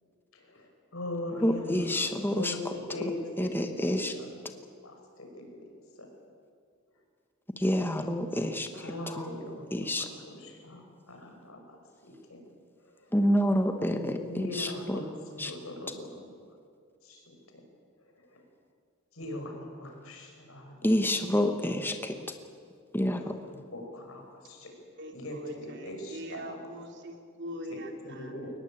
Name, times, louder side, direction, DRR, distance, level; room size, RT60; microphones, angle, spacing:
voice 1, 0.3-2.1 2.3-4.3 4.8-5.6 8.7-10.8 11.1-11.8 12.0-12.4 12.9-13.0 14.2-15.1 15.4-16.3 17.0-17.3 18.3-18.4 19.1-20.9 21.6-21.7 23.1-23.3 23.7-24.7 25.1-26.6 27.7-28.5, left 1 dB, 90° left, 3 dB, 5.5 m, -40 dB
voice 2, 1.4-2.7 3.4-4.1 7.6-9.3 9.7-10.1 13.1-15.0 15.4-15.5 20.8-22.3 22.9-23.4, equal, 10° left, 6 dB, 1.1 m, -28 dB
voice 3, 25.0-28.3, equal, 55° right, 3 dB, 3.1 m, -42 dB
22.0 x 19.5 x 8.8 m, 2.2 s
head